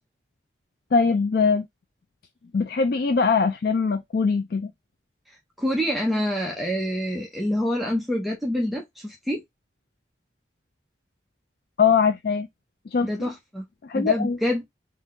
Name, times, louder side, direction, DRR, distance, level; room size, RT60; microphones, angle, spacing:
voice 1, 0.9-1.7 2.5-4.7 11.8-12.5 12.9-13.3 13.8-14.4, left 5 dB, 55° left, 0.4 m, -22 dB
voice 2, 5.6-9.4 13.0-13.7 13.9-14.7, equal, ahead, 0.6 m, -26 dB
3.7 x 2.7 x 3.7 m
head